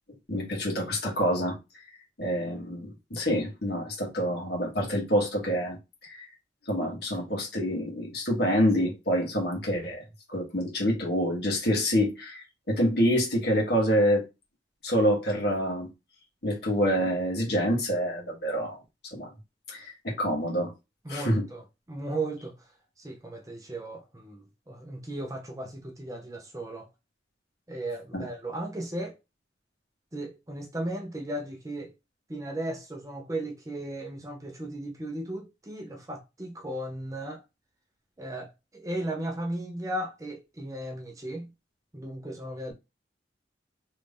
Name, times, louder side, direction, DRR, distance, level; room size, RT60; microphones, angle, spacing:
voice 1, 0.3-1.5 2.2-5.8 6.0-6.2 6.7-10.0 10.3-14.2 14.8-15.9 16.4-18.8 19.1-19.3 19.7-20.7 21.1-21.4 28.1-28.3, equal, 65° left, 1.5 m, -27 dB
voice 2, 21.0-22.6 23.0-26.9 27.7-29.2 30.1-31.9 32.3-37.4 38.2-41.5 41.9-42.7, right 1 dB, 20° right, 0.5 m, -36 dB
3.1 x 2.6 x 3.5 m
head